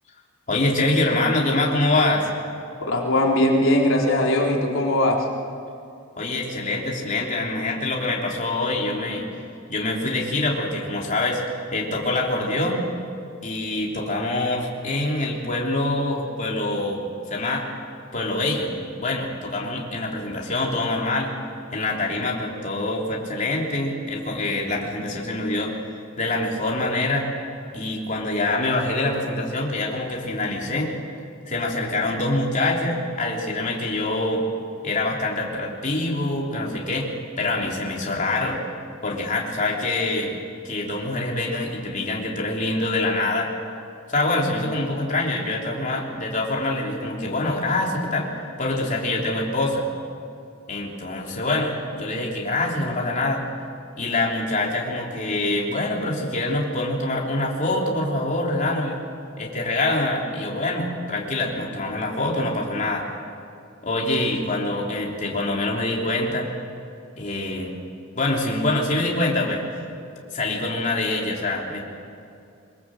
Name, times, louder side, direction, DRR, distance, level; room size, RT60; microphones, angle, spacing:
voice 1, 0.5-2.3 6.2-9.3 9.7-11.4 11.7-12.9 13.4-17.7 18.1-21.3 21.7-25.7 26.2-27.3 27.7-30.9 31.5-34.4 34.8-37.1 37.4-38.6 39.0-40.3 40.6-43.5 44.1-48.3 48.6-49.9 50.7-53.4 54.0-59.0 59.4-63.0 63.8-66.5 67.2-67.7 68.1-69.6 70.3-71.8, left 2 dB, 40° left, -2 dB, 3.3 m, -25 dB
voice 2, 2.8-5.2, left 1 dB, 90° left, -2 dB, 4.0 m, -20 dB
23.5 x 22.0 x 7.6 m, 2.5 s
head